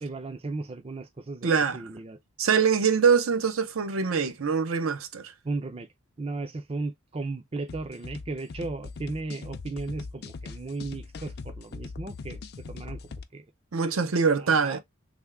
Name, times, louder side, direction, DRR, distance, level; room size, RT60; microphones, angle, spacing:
voice 1, 0.0-2.2 5.4-5.9 6.2-13.0 13.3-13.4 14.4-14.8, right 3 dB, 30° right, 0.4 m, -35 dB
voice 2, 1.4-1.8 2.4-5.3 13.7-14.8, right 6 dB, 80° right, 0.6 m, -24 dB
sound 1, 7.7-13.2, left 4 dB, 50° left, 0.4 m, -41 dB
3.5 x 2.2 x 3.4 m
head